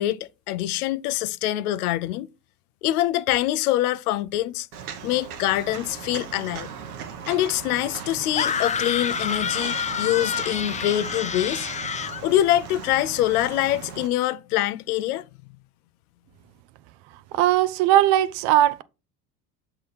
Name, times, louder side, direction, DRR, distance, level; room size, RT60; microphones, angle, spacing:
voice 1, 0.0-2.3 2.8-4.7 5.0-6.7 7.3-11.7 12.2-15.3, left 14 dB, 80° left, 0.6 m, -24 dB
Walk footsteps, 4.7-14.1, right 7 dB, 85° right, 1.3 m, -38 dB
sound 1, 8.3-12.2, left 7 dB, 15° left, 0.4 m, -28 dB
voice 2, 17.3-18.8, right 13 dB, 65° right, 0.8 m, -19 dB
7.8 x 3.9 x 4.2 m
hypercardioid pair, 70°, 44 cm